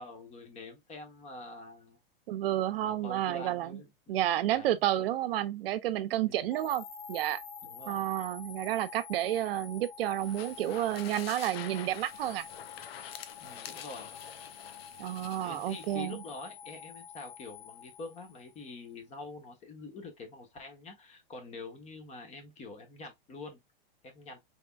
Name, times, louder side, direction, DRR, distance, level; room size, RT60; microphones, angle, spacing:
voice 1, 0.0-2.0 2.8-4.2 4.5-5.1 6.2-6.5 7.6-8.0 13.4-14.1 15.4-23.6 24.0-24.4, left 3 dB, 25° left, 1.0 m, -46 dB
voice 2, 2.3-3.8 4.1-7.4 7.9-12.5 15.0-16.2, right 13 dB, 75° right, 0.6 m, -31 dB
sound 1, 6.5-18.7, left 6 dB, 65° left, 1.2 m, -48 dB
sound 2, 10.2-16.0, left 9 dB, 90° left, 0.7 m, -47 dB
3.6 x 3.4 x 2.2 m
supercardioid pair, 145°, 29 cm